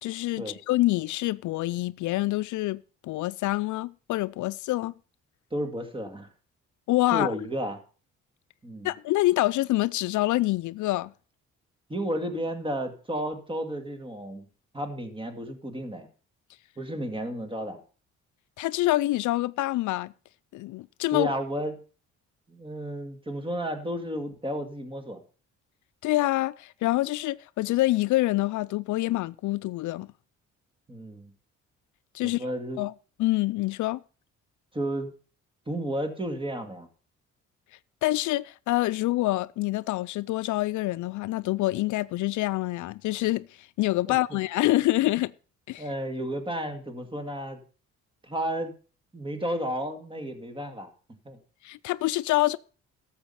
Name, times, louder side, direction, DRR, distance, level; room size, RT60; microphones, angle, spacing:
voice 1, 0.0-4.9 6.9-7.3 8.8-11.1 18.6-20.1 20.5-21.3 26.0-30.1 32.1-32.4 32.8-32.9 33.2-34.0 38.0-43.5 43.8-45.3 45.7-45.8 51.6-52.6, left 17 dB, 75° left, 0.5 m, -26 dB
voice 2, 5.5-6.3 7.1-7.8 8.6-8.9 11.9-14.5 14.7-16.1 16.8-17.8 21.1-21.8 22.5-25.2 30.9-31.3 32.2-32.8 34.7-35.1 35.7-36.9 44.1-44.2 45.8-47.6 48.2-48.7 49.1-50.9 51.3-51.4, right 1 dB, 15° right, 2.2 m, -32 dB
12.5 x 7.2 x 5.6 m
cardioid pair, 90°, 30 cm